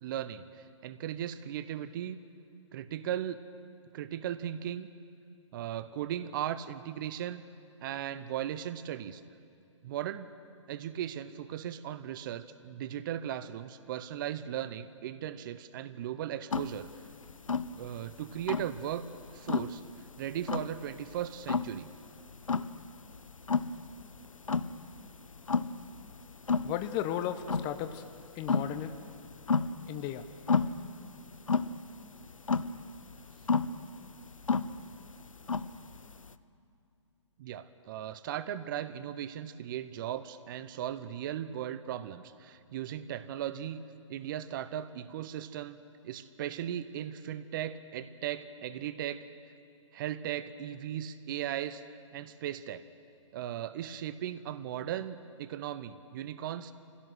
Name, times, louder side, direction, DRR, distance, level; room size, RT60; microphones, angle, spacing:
voice 1, 0.0-2.2 2.7-3.4 3.9-4.9 5.5-7.4 7.8-9.2 9.8-10.3 10.7-16.9 17.7-19.0 19.3-19.8 20.2-21.9 37.4-43.8 44.1-49.3 49.9-51.8 52.1-52.8 53.3-56.7, right 11 dB, 40° right, 14 dB, 0.8 m, -37 dB
sound 1, 16.5-36.3, left 4 dB, 90° left, 0.7 m, -32 dB
voice 2, 26.6-28.0 28.4-28.9 29.9-30.2, left 11 dB, 25° left, 10 dB, 0.8 m, -34 dB
25.0 x 16.5 x 6.3 m, 2.5 s
figure-of-eight pair, 130°, 16 cm